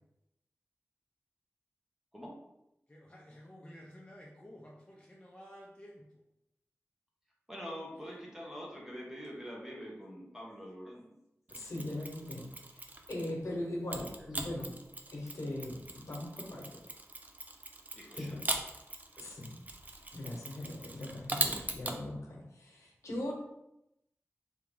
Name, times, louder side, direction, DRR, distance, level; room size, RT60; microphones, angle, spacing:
voice 1, 2.1-2.4 7.5-11.2 14.2-14.3 17.9-18.3, equal, 10° right, 1.1 m, -45 dB
voice 2, 2.9-4.7 5.1-5.9, equal, 20° left, 0.6 m, -52 dB
voice 3, 11.5-14.7 15.1-16.8 18.1-18.4 19.2-19.6 20.1-23.3, left 1 dB, 80° left, 0.9 m, -40 dB
Mechanisms, 11.5-13.4 13.9-22.0, right 2 dB, 35° right, 0.5 m, -40 dB
3.5 x 2.8 x 3.7 m
wide cardioid pair, 70°, 5 cm